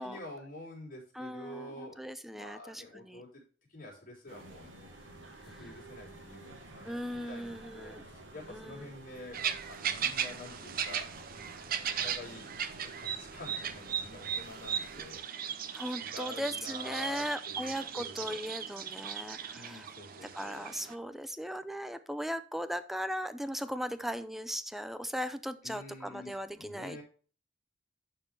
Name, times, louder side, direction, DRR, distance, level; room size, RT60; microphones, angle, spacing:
voice 1, 0.0-3.4 3.7-9.4 9.7-11.1 11.9-12.5 12.8-15.2 16.0-18.4 19.5-20.7 25.6-27.0, left 2 dB, 50° left, -4 dB, 3.6 m, -48 dB
voice 2, 1.1-3.2 5.4-5.6 6.9-8.0 8.5-8.9 15.7-19.9 20.3-27.0, equal, ahead, 12 dB, 0.4 m, -38 dB
sound 1, 4.3-15.2, right 2 dB, 75° right, 1.6 m, -51 dB
sound 2, 9.3-20.9, right 8 dB, 50° right, 0.6 m, -37 dB
10.5 x 4.5 x 3.4 m, 0.40 s
head